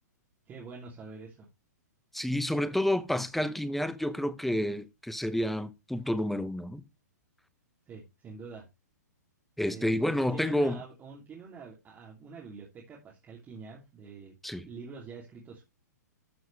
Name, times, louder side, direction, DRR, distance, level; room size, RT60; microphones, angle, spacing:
voice 1, 0.5-1.5 7.9-8.6 9.7-14.3 14.6-15.6, right 5 dB, 20° right, 2.8 m, -46 dB
voice 2, 2.1-6.8 9.6-10.8 14.4-14.7, left 1 dB, ahead, 0.8 m, -29 dB
12.5 x 6.2 x 3.3 m
hypercardioid pair, 120°, 9 cm